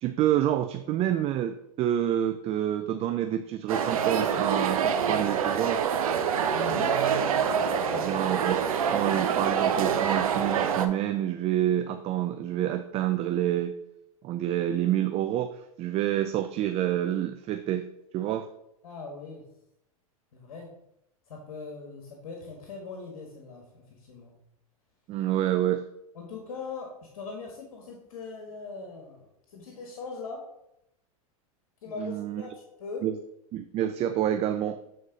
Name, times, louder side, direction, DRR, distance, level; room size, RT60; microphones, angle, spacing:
voice 1, 0.0-5.8 8.0-8.6 8.9-13.7 14.2-17.9 18.1-18.5 25.1-25.8 32.0-32.5 33.0-33.2 33.5-34.8, right 12 dB, 35° right, 9 dB, 0.4 m, -28 dB
sound 1, 3.7-10.9, right 7 dB, 75° right, 0.7 m, -26 dB
voice 2, 6.5-6.9 7.5-8.3 18.8-19.4 20.3-20.7 21.3-24.3 26.1-30.4 31.8-33.0, left 4 dB, 70° left, 1 dB, 1.5 m, -40 dB
7.8 x 4.3 x 3.9 m, 0.79 s
hypercardioid pair, 95°, 18 cm